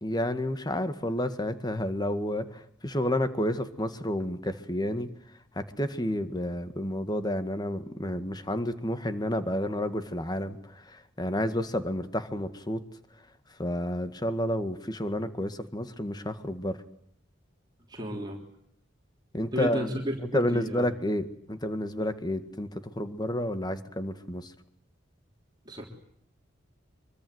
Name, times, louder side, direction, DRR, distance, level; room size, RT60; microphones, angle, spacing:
voice 1, 0.0-5.1 5.6-12.8 13.6-16.8 19.3-19.9 20.3-24.5, left 1 dB, 20° left, 10 dB, 1.8 m, -30 dB
voice 2, 17.9-18.4 19.5-20.9 25.6-25.8, equal, 20° right, 0 dB, 3.4 m, -32 dB
25.0 x 24.5 x 8.0 m, 0.69 s
head